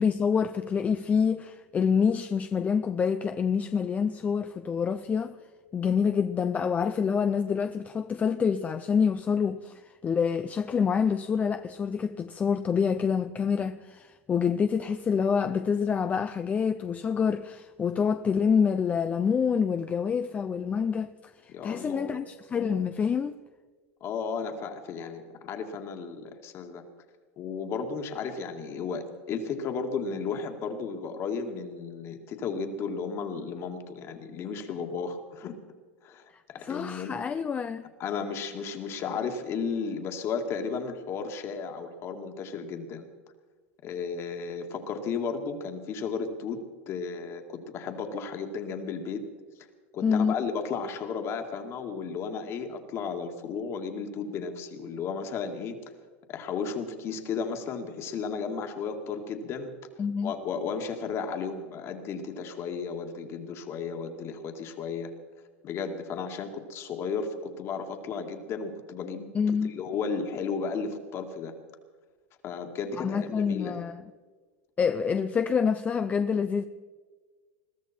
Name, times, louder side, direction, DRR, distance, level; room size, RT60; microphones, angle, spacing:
voice 1, 0.0-5.4 5.7-21.1 21.4-23.3 36.6-37.9 50.0-50.4 60.0-60.3 69.3-69.7 73.0-74.1 74.8-76.7, left 6 dB, 20° left, 0.5 m, -27 dB
voice 2, 21.5-22.2 24.0-26.8 27.4-35.6 36.0-36.2 36.5-37.2 38.0-43.1 43.8-46.6 46.9-49.2 49.9-55.8 56.3-59.7 60.2-65.1 65.6-69.3 69.6-71.5 72.4-73.8, left 5 dB, 40° left, 2.1 m, -34 dB
21.5 x 13.5 x 4.4 m
supercardioid pair, 125°, 7 cm